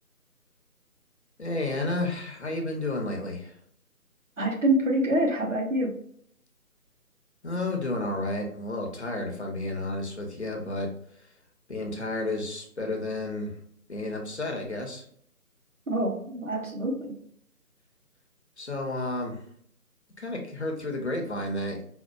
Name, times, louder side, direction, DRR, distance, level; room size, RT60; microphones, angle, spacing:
voice 1, 1.4-3.5 7.4-10.9 11.7-13.6 13.9-15.0 18.6-19.4 20.2-21.9, left 2 dB, 45° left, 1 dB, 0.8 m, -31 dB
voice 2, 4.4-6.0 15.9-17.2, right 1 dB, 55° right, -2 dB, 1.2 m, -26 dB
5.2 x 2.3 x 2.3 m, 0.63 s
figure-of-eight pair, 155°, 45 cm